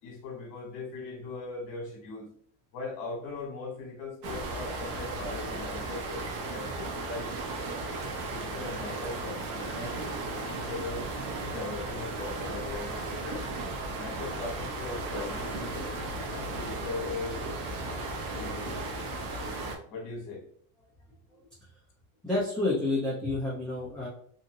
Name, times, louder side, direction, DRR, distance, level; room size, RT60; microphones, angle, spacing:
voice 1, 0.0-2.3 2.7-7.3 8.3-10.0 10.4-11.1 11.4-13.4 13.9-15.9 16.3-17.4 18.3-19.0 19.9-20.5, left 3 dB, 55° left, 0 dB, 1.4 m, -39 dB
sound 1, 4.2-19.8, right 2 dB, 50° right, 0.7 m, -35 dB
voice 2, 22.2-24.1, left 2 dB, ahead, -8 dB, 0.7 m, -29 dB
2.9 x 2.6 x 2.6 m, 0.62 s
supercardioid pair, 130°, 42 cm